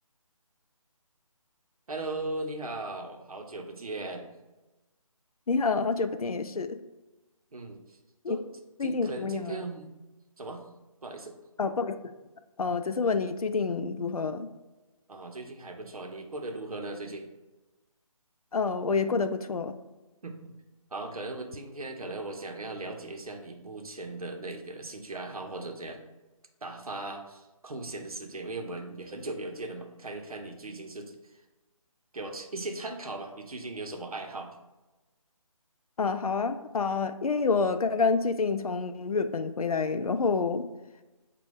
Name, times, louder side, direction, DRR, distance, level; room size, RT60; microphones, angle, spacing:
voice 1, 1.9-4.3 7.5-8.0 8.3-8.4 8.8-9.9 10.4-10.6 11.0-11.3 15.1-17.3 20.2-20.5 20.9-26.0 26.6-31.1 32.1-34.6, right 2 dB, 80° right, 4 dB, 0.7 m, -38 dB
voice 2, 5.5-6.8 8.2-8.4 8.8-9.6 11.6-12.0 12.6-14.5 18.5-19.7 36.0-40.7, left 4 dB, 90° left, 9 dB, 0.4 m, -28 dB
5.1 x 2.2 x 3.2 m, 1.1 s
figure-of-eight pair, 155°, 18 cm